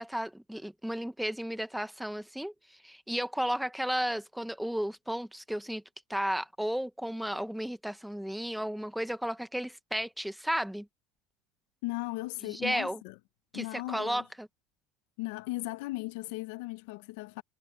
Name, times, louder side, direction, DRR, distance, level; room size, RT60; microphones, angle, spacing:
voice 1, 0.0-5.8 6.1-10.9 12.4-13.0 13.5-14.5, equal, ahead, 0.8 m, -33 dB
voice 2, 11.8-13.1 13.5-14.2 15.2-17.4, left 21 dB, 65° left, 0.6 m, -37 dB
supercardioid pair, 165°, 0 cm